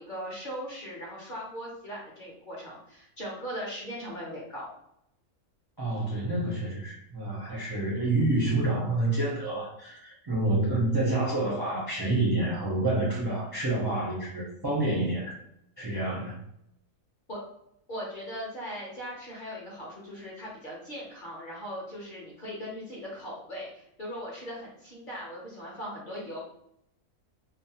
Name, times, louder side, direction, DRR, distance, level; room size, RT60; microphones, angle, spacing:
voice 1, 0.0-4.7 17.3-17.4 17.9-26.4, equal, 50° left, -5 dB, 0.7 m, -39 dB
voice 2, 5.8-15.4 15.8-16.4, right 2 dB, 35° right, -6 dB, 0.4 m, -28 dB
2.6 x 2.1 x 2.7 m, 0.76 s
omnidirectional pair, 1.5 m